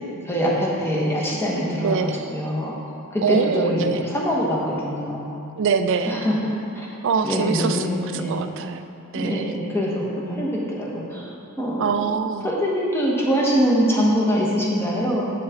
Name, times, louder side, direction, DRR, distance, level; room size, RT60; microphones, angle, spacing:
voice 1, 0.2-2.7 3.1-5.3 6.0-6.9 7.2-8.4 9.1-11.3 11.6-11.9 12.4-15.3, equal, 10° left, -4 dB, 1.1 m, -23 dB
voice 2, 1.7-2.2 3.2-4.1 5.6-6.3 7.0-7.9 8.1-8.9 9.1-9.5 11.8-12.5, right 5 dB, 60° right, 8 dB, 0.4 m, -24 dB
7.7 x 6.4 x 3.6 m, 2.8 s
head